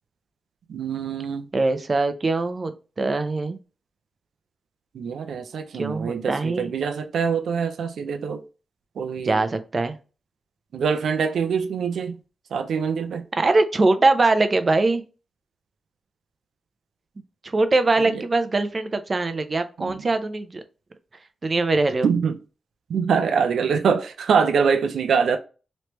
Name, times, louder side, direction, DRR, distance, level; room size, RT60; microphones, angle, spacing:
voice 1, 0.7-1.5 4.9-8.4 9.0-9.4 10.7-12.2 12.5-13.2 18.1-18.2 19.8-20.0 22.0-22.3 22.9-25.4, right 6 dB, 90° right, 0.4 m, -24 dB
voice 2, 1.5-2.7 3.0-3.6 5.7-6.7 9.2-10.0 13.3-15.0 17.5-20.6 21.4-22.1, right 3 dB, 40° right, 0.5 m, -22 dB
3.2 x 3.1 x 3.0 m
cardioid pair, 80°, 0 cm